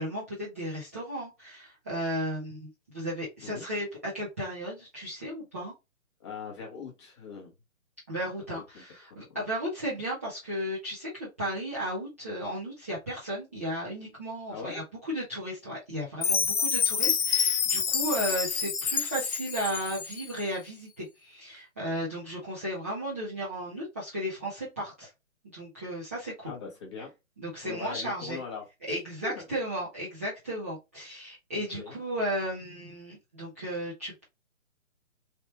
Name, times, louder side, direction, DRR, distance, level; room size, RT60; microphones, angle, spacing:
voice 1, 0.0-5.7 8.1-25.1 25.5-26.5 27.4-28.4 28.9-34.2, equal, 10° right, 0.5 m, -34 dB
voice 2, 6.2-7.5 8.5-8.8 9.1-9.2 14.5-14.8 26.4-27.1 27.6-28.7 29.2-29.4 31.6-32.0, left 5 dB, 20° left, 0.9 m, -40 dB
Chime, 16.2-20.3, left 6 dB, 85° left, 0.6 m, -28 dB
3.3 x 2.6 x 2.9 m
figure-of-eight pair, 135°, 41 cm